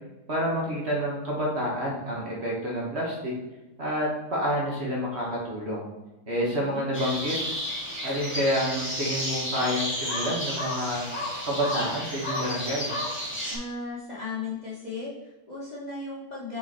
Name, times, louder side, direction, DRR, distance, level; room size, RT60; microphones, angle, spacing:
voice 1, 0.3-3.3 3.8-5.9 6.3-7.4 8.0-11.0 11.4-12.9, equal, 45° right, -3 dB, 1.5 m, -28 dB
voice 2, 6.4-6.9 13.5-16.6, left 4 dB, 30° left, -7 dB, 1.2 m, -36 dB
sound 1, 6.9-13.6, left 1 dB, 5° left, 1.9 m, -32 dB
5.6 x 4.3 x 4.1 m, 1.0 s
omnidirectional pair, 1.7 m